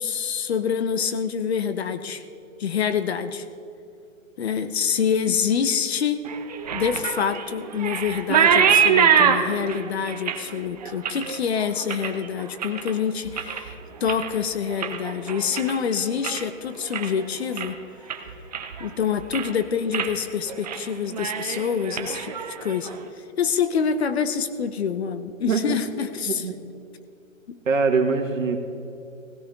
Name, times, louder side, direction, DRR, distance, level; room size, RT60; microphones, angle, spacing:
voice 1, 0.0-2.2 2.6-3.5 4.4-6.2 6.7-17.8 18.8-26.5 27.5-27.6, left 7 dB, 50° left, 11 dB, 0.9 m, -26 dB
sound 1, 6.3-12.9 13.3-13.7 14.0-16.5 16.8-17.2 17.6-17.7 18.1-18.9 19.2-19.6 19.9-20.1 20.5-20.8 21.1-23.0, right 7 dB, 30° right, 0.7 m, -24 dB
voice 2, 27.7-28.6, right 4 dB, 75° right, 4 dB, 1.8 m, -23 dB
17.5 x 16.5 x 3.5 m, 2.7 s
hypercardioid pair, 160°, 39 cm